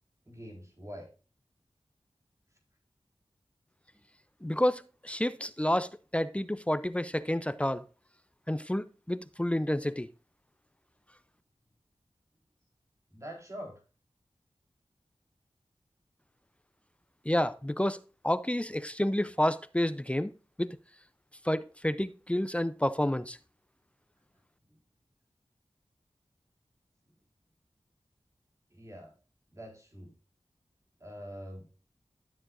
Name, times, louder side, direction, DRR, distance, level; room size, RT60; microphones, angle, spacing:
voice 1, 0.3-1.1 13.1-13.8 28.7-29.1 29.5-30.1 31.0-31.8, equal, 30° right, 3.9 m, -44 dB
voice 2, 4.4-7.8 8.5-10.1 17.3-18.0 18.2-20.3 20.6-20.8 21.4-23.4, left 1 dB, 10° left, 0.5 m, -29 dB
12.5 x 7.5 x 2.5 m
wide cardioid pair, 60°, 10 cm